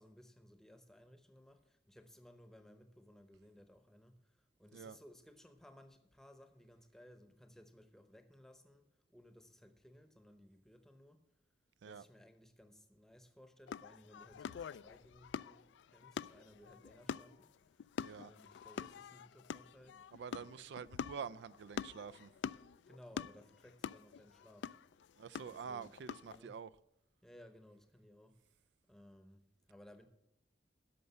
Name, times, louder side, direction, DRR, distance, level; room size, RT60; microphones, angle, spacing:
voice 1, 0.0-11.2 11.8-17.9 18.1-20.7 22.9-24.8 25.4-26.0 26.2-26.6 27.2-28.4 28.9-30.1, equal, 5° left, 0.8 m, -60 dB
sound 1, 13.7-26.4, left 7 dB, 85° left, 0.3 m, -46 dB
voice 2, 20.1-22.3 25.2-26.7, right 6 dB, 80° right, 0.3 m, -47 dB
11.0 x 6.6 x 7.9 m
head